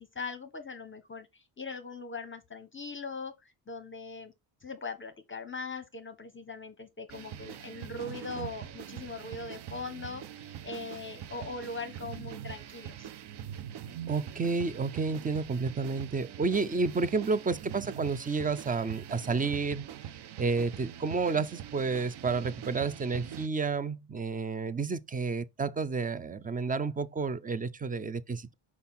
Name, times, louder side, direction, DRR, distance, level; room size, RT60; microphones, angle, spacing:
voice 1, 0.1-4.3 4.6-13.1, left 3 dB, 25° left, 0.7 m, -40 dB
sound 1, 7.1-23.5, right 10 dB, 55° right, 0.7 m, -43 dB
voice 2, 14.1-19.9 20.4-28.5, right 4 dB, 20° right, 0.3 m, -30 dB
5.4 x 4.8 x 4.2 m
cardioid pair, 130°, 48 cm